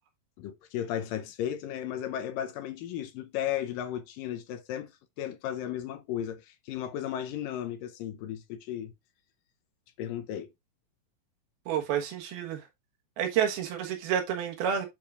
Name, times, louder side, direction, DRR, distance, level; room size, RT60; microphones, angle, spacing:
voice 1, 0.4-4.9 5.2-8.9 10.0-10.5, left 10 dB, 75° left, 2.3 m, -35 dB
voice 2, 11.7-12.6 13.2-14.9, right 9 dB, 85° right, 3.3 m, -29 dB
10.5 x 4.7 x 2.4 m
omnidirectional pair, 4.3 m